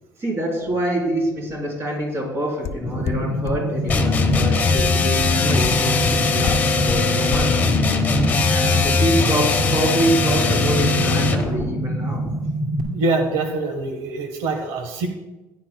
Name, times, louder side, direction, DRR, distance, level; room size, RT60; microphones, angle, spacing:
voice 1, 0.0-7.5 8.5-12.2, right 1 dB, 35° right, -1 dB, 3.5 m, -26 dB
sound 1, 2.6-2.7 3.1-3.2 3.5-3.6 3.9-4.0 4.3-4.4 4.8-4.9 5.2-5.3 5.6-5.7 6.0-6.1 6.5-6.6 6.9-7.0 7.3-7.4, left 10 dB, 45° left, 0.6 m, -25 dB
sound 2, 2.8-12.8, right 1 dB, 10° right, 2.3 m, -26 dB
sound 3, 3.9-11.5, left 4 dB, 20° left, 1.0 m, -20 dB
voice 2, 12.9-15.1, right 3 dB, 85° right, 5 dB, 1.2 m, -24 dB
14.5 x 10.0 x 2.2 m, 1.1 s
cardioid pair, 155°, 8 cm